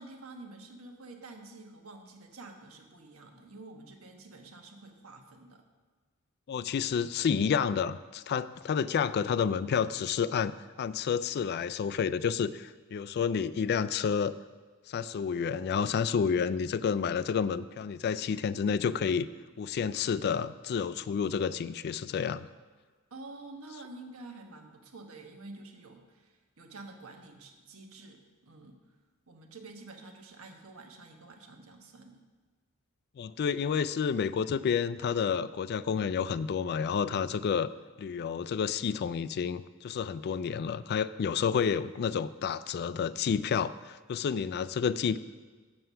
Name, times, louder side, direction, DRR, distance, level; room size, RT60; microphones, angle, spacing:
voice 1, 0.0-5.6 23.1-28.9 29.3-32.2, right 2 dB, 85° right, 3 dB, 1.3 m, -49 dB
voice 2, 6.5-10.5 10.8-14.3 14.9-19.3 19.6-22.5 33.2-37.7 38.0-45.2, left 6 dB, 50° left, 15 dB, 0.3 m, -30 dB
7.9 x 7.6 x 5.6 m, 1.5 s
head